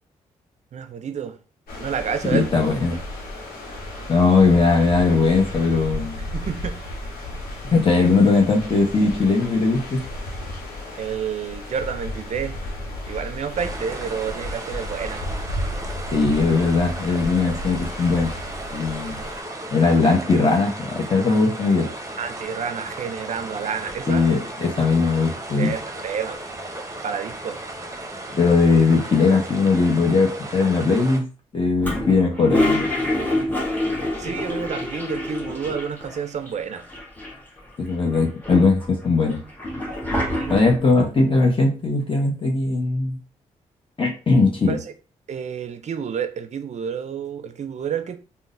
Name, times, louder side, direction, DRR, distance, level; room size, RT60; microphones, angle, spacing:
voice 1, 0.7-1.4 1.8-2.6 2.9-3.0 6.3-6.8 11.0-12.6 13.1-15.3 22.2-24.2 25.6-26.4 27.0-27.6 34.2-36.8 40.1-40.6 44.7-44.9 45.3-48.2, right 7 dB, 50° right, 0.5 m, -29 dB
sound 1, 1.7-19.4, left 1 dB, 70° left, 1.0 m, -34 dB
voice 2, 2.2-3.0 4.1-6.3 7.7-10.0 16.1-18.3 18.7-19.2 19.7-21.9 24.1-25.7 28.3-31.2 31.5-32.9 37.8-39.4 40.5-43.2 44.0-44.8, left 3 dB, 35° left, 0.9 m, -19 dB
sound 2, 13.6-31.2, right 1 dB, 20° right, 0.8 m, -35 dB
Toilet flush, 31.8-36.2 36.5-36.6 36.8-37.6 38.1-40.9, left 1 dB, 10° left, 1.2 m, -26 dB
3.6 x 2.1 x 2.5 m
hypercardioid pair, 40°, 16 cm